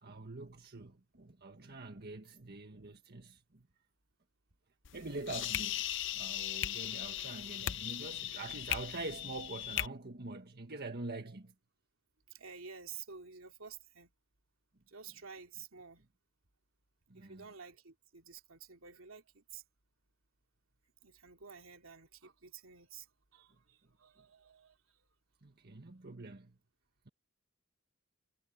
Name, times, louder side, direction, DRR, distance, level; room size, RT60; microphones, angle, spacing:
voice 1, 0.0-3.7 4.9-5.8 6.1-11.5 17.1-17.5 25.4-26.6, right 2 dB, 50° right, 1.7 m, -45 dB
sound 1, 4.8-9.9, left 12 dB, 65° left, 0.6 m, -38 dB
voice 2, 12.3-14.1 14.9-16.0 17.1-19.6 21.0-23.1 23.3-24.8, right 6 dB, 75° right, 3.0 m, -51 dB
head